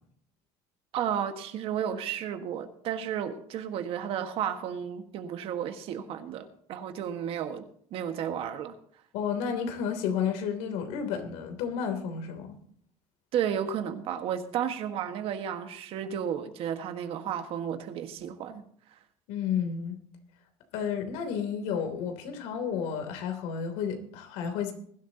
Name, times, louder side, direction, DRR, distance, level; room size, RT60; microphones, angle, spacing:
voice 1, 0.9-8.8 13.3-18.6, right 9 dB, 55° right, 1.6 m, -33 dB
voice 2, 9.1-12.5 19.3-20.0 20.7-24.7, left 7 dB, 80° left, 3.1 m, -31 dB
21.5 x 12.0 x 2.9 m
cardioid pair, 150°, 12 cm